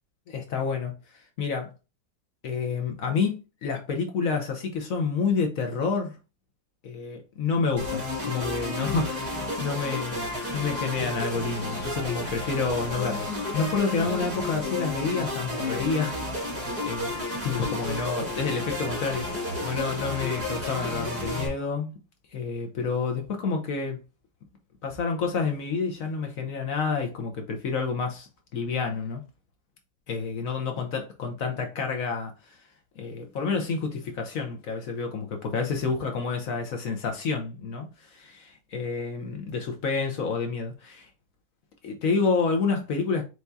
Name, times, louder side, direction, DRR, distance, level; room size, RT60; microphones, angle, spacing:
voice 1, 0.3-1.0 1.4-1.7 2.4-6.2 6.8-21.9 22.3-24.0 24.8-29.2 30.1-32.6 33.0-41.1 41.8-43.2, left 5 dB, 60° left, 1.0 m, -29 dB
sound 1, 7.8-21.5, left 2 dB, 10° right, 1.6 m, -32 dB
4.6 x 3.4 x 2.7 m
omnidirectional pair, 2.0 m